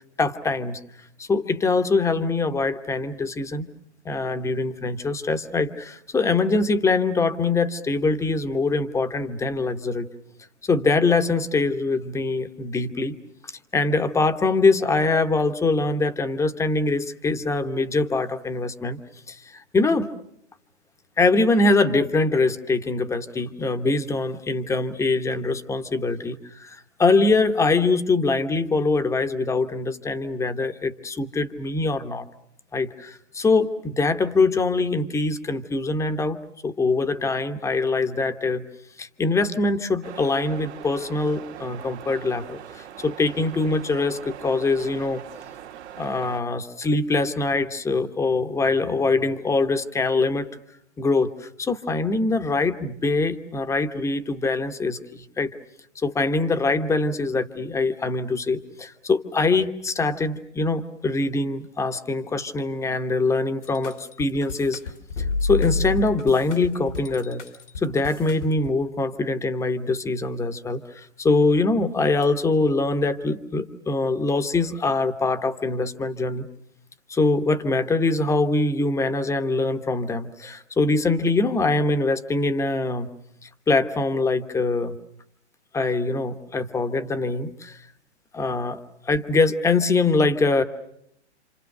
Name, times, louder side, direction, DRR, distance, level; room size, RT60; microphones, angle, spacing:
voice 1, 0.2-0.8 1.2-3.7 4.0-10.1 10.6-13.2 13.7-19.0 19.3-20.1 21.2-32.3 32.7-38.6 39.0-45.2 46.0-50.5 51.0-55.5 55.9-64.8 65.4-67.4 67.8-76.5 77.1-83.1 83.4-85.0 85.7-87.8 88.3-88.8 89.0-90.6, left 3 dB, 10° left, 9 dB, 1.0 m, -23 dB
sound 1, 40.0-46.4, right 10 dB, 70° right, 1.9 m, -41 dB
sound 2, 63.6-68.7, left 3 dB, 80° left, 2.7 m, -29 dB
29.0 x 27.0 x 6.6 m, 0.73 s
hypercardioid pair, 130°, 35 cm